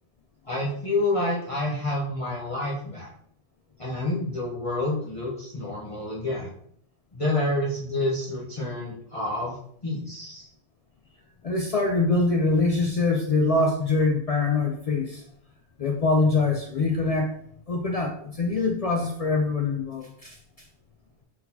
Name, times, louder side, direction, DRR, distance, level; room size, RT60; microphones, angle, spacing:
voice 1, 0.4-3.1 3.8-6.5 7.1-9.6 9.8-10.5, left 2 dB, 35° left, -7 dB, 0.9 m, -28 dB
voice 2, 11.4-15.2 15.8-17.3 17.7-20.4, left 3 dB, 55° left, 2 dB, 0.4 m, -24 dB
4.1 x 4.1 x 2.7 m, 0.65 s
omnidirectional pair, 1.1 m